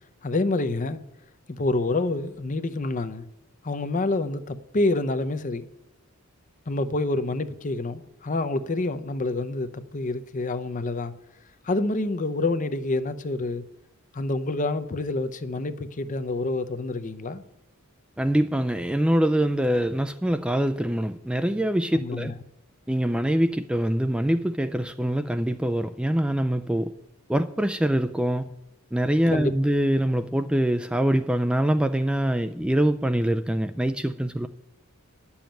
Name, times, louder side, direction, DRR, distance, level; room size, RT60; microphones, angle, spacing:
voice 1, 0.2-1.0 1.5-3.2 3.6-5.6 6.7-11.1 11.6-13.6 14.1-17.4 21.9-22.3 29.3-29.5, left 2 dB, 35° left, 0.6 m, -27 dB
voice 2, 18.2-22.3 22.9-26.9 27.3-28.5 28.9-34.5, right 1 dB, 5° right, 0.3 m, -24 dB
10.5 x 7.1 x 8.9 m
head